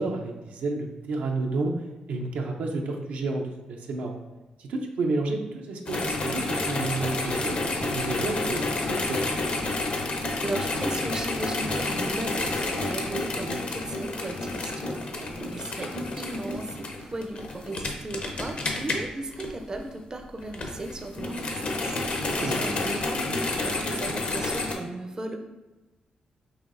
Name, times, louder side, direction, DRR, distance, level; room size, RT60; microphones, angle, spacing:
voice 1, 0.0-1.7 2.1-4.2 4.6-9.2 15.1-15.6 22.3-22.6, right 3 dB, 85° right, 1 dB, 0.5 m, -31 dB
sound 1, 5.9-20.0 20.4-24.7, left 2 dB, 55° left, 0.6 m, -30 dB
voice 2, 10.4-25.6, right 2 dB, 30° right, 5 dB, 0.4 m, -36 dB
5.7 x 2.7 x 2.5 m, 1.1 s
cardioid pair, 75°, 2 cm